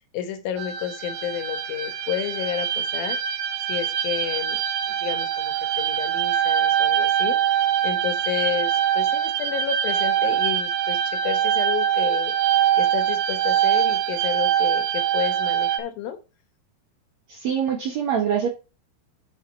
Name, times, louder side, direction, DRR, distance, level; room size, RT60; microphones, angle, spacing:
voice 1, 0.1-3.2 3.7-4.6 4.9-12.4 12.8-16.2, left 9 dB, 75° left, 3.0 m, -31 dB
sound 1, 0.6-15.8, right 10 dB, 85° right, 2.9 m, -23 dB
voice 2, 17.3-18.5, right 8 dB, 60° right, 2.2 m, -24 dB
7.0 x 5.0 x 5.8 m
omnidirectional pair, 4.4 m